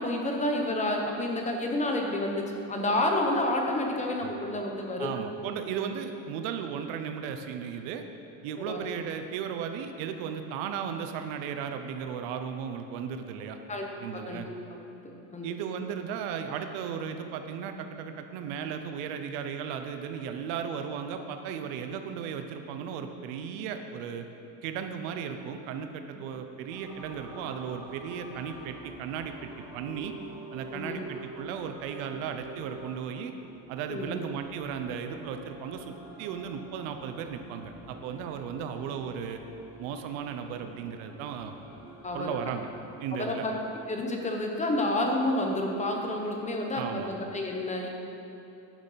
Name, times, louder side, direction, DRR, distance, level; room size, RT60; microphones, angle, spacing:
voice 1, 0.0-5.1 8.6-8.9 13.7-13.9 14.1-14.5 15.0-15.5 30.7-31.0 33.9-34.2 42.0-42.3 43.1-43.5 43.9-47.9, left 1 dB, 15° left, 1 dB, 1.0 m, -29 dB
voice 2, 5.0-8.0 8.4-13.6 14.0-14.5 15.4-24.3 24.6-30.1 30.5-33.3 33.7-39.4 39.8-41.5 42.1-42.7 43.0-43.4 46.7-47.1, right 7 dB, 85° right, 7 dB, 0.9 m, -36 dB
sound 1, 26.7-44.0, right 2 dB, 5° right, 1.6 m, -48 dB
10.5 x 6.6 x 5.7 m, 2.9 s
cardioid pair, 155°, 45 cm